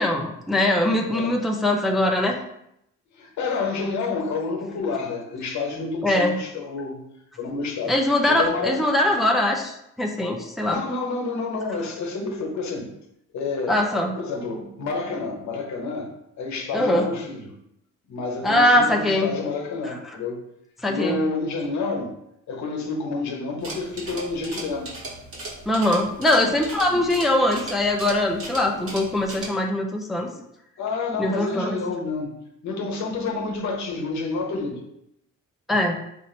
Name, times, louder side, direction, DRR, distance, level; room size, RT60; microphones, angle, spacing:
voice 1, 0.0-2.4 6.0-6.4 7.9-10.8 13.7-14.1 16.7-17.1 18.4-19.3 19.8-19.9 20.8-21.2 25.7-30.3 31.2-31.8 35.7-36.0, left 1 dB, ahead, 1 dB, 0.5 m, -22 dB
voice 2, 1.1-1.4 3.1-7.0 7.4-8.0 8.3-8.8 10.6-12.9 13.3-13.8 14.1-16.1 16.4-17.5 18.1-20.4 20.8-22.1 22.5-24.9 26.9-27.0 28.6-28.8 30.8-34.8, left 3 dB, 70° left, 2 dB, 1.0 m, -29 dB
sound 1, 23.6-29.5, right 2 dB, 50° right, 1.4 m, -37 dB
4.2 x 2.5 x 4.3 m, 0.78 s
cardioid pair, 90°, 30 cm